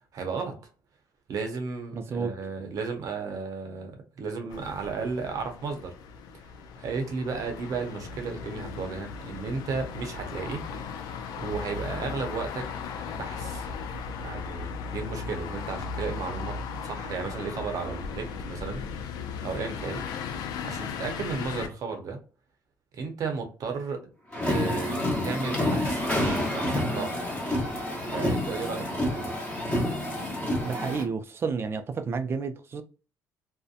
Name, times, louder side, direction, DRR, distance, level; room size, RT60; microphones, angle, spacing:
voice 1, 0.1-0.6 1.3-5.9 6.8-10.6 11.4-12.6 13.1-13.7 14.2-16.5 16.8-20.0 20.6-22.2 22.9-24.0 24.4-27.3 28.0-29.3, right 4 dB, 60° right, 0.7 m, -34 dB
voice 2, 1.9-2.3 30.6-32.8, right 5 dB, 40° right, 0.4 m, -31 dB
sound 1, 4.5-21.7, left 5 dB, 90° left, 0.4 m, -37 dB
sound 2, 24.3-31.0, left 1 dB, 15° left, 0.9 m, -28 dB
2.6 x 2.1 x 2.4 m
cardioid pair, 115°, 7 cm